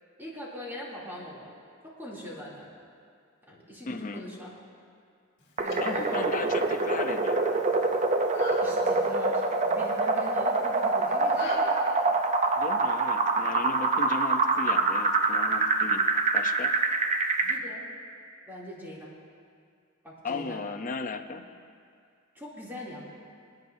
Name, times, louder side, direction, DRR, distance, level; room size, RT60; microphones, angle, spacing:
voice 1, 0.2-1.5 1.8-2.7 3.5-4.5 5.6-6.5 8.6-11.7 17.4-17.9 18.4-19.1 20.0-20.6 22.3-23.1, left 1 dB, 10° right, -6 dB, 2.7 m, -42 dB
voice 2, 3.9-4.2 5.8-7.5 12.6-16.7 20.2-21.5, left 3 dB, 40° left, 6 dB, 0.6 m, -35 dB
sound 1, 5.4-11.6, left 1 dB, 60° left, 2.3 m, -44 dB
sound 2, 5.6-17.6, right 3 dB, 35° right, 0.5 m, -25 dB
27.0 x 9.4 x 2.7 m, 2.2 s
head